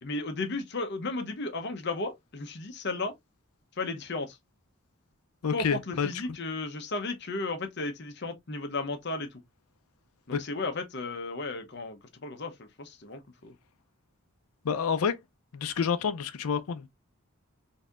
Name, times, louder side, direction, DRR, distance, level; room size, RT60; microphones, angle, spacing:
voice 1, 0.0-3.1 3.8-4.4 5.5-9.4 10.3-13.5, left 3 dB, 50° left, 0.8 m, -34 dB
voice 2, 5.4-6.1 10.3-10.4 14.6-15.2 15.5-16.9, left 6 dB, 80° left, 0.5 m, -28 dB
4.0 x 2.7 x 2.4 m
head